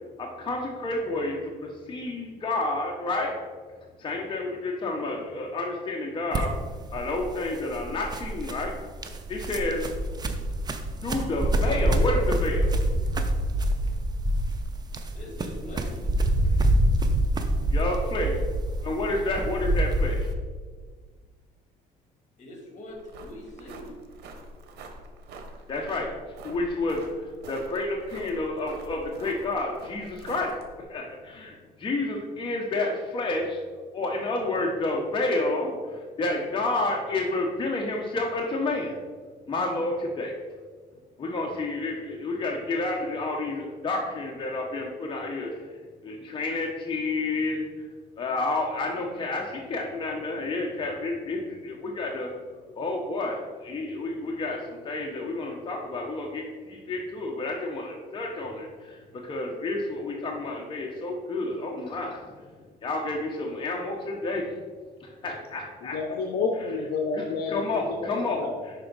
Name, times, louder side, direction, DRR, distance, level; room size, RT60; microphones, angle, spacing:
voice 1, 0.2-3.4 4.0-6.6 6.9-8.8 9.3-9.9 11.0-12.7 16.4-16.6 17.7-18.4 18.8-20.3 25.7-26.2 26.4-33.6 33.9-39.0 39.5-40.3 41.2-45.8 46.0-47.6 48.2-52.3 52.8-62.3 62.8-64.5 65.0-66.0 67.1-68.7, left 2 dB, 30° left, -1 dB, 0.8 m, -30 dB
sound 1, 6.3-20.3, right 1 dB, 25° right, 0.5 m, -26 dB
voice 2, 15.1-16.0 22.4-23.9 65.2-65.4, left 1 dB, 45° left, 2 dB, 1.6 m, -43 dB
sound 2, 22.9-30.8, right 2 dB, 75° right, 0.9 m, -45 dB
voice 3, 65.8-67.6 67.9-68.0 68.4-68.6, left 4 dB, 70° left, 3 dB, 0.6 m, -29 dB
5.7 x 4.4 x 3.9 m, 1.5 s
cardioid pair, 110°, 17 cm